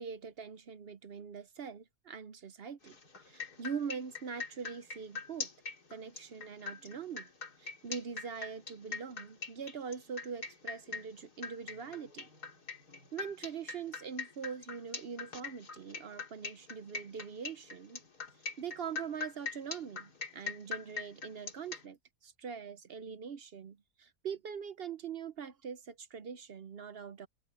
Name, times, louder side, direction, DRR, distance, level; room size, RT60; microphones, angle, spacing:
voice 1, 0.0-3.0 3.2-5.5 5.9-7.3 7.6-12.3 13.1-18.0 18.6-27.3, right 6 dB, 50° right, 0.7 m, -43 dB
sound 1, 2.8-21.8, left 5 dB, 75° left, 3.5 m, -42 dB
open air
omnidirectional pair, 1.7 m